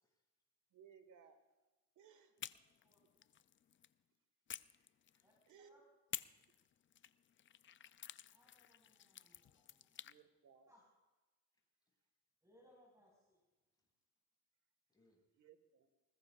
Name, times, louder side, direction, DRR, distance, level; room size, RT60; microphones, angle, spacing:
voice 1, 0.0-0.4 1.2-1.3 5.1-5.4 8.1-8.3 11.5-12.1 13.7-13.9 14.9-15.2, left 1 dB, 15° left, -2 dB, 6.2 m, -80 dB
voice 2, 0.7-1.4 2.0-2.3 3.0-3.1 5.5-5.9 6.5-6.7 8.5-8.7 10.0-10.8 13.8-13.9 15.4-15.9, right 7 dB, 80° right, 9 dB, 1.7 m, -64 dB
sound 1, 2.4-3.9 4.5-5.5 6.1-10.2, left 10 dB, 40° left, 0.5 m, -52 dB
voice 3, 8.3-10.1 10.7-10.8 12.4-13.4, equal, 10° right, -3 dB, 4.8 m, -70 dB
20.5 x 20.0 x 2.5 m, 1.2 s
cardioid pair, 90°, 30 cm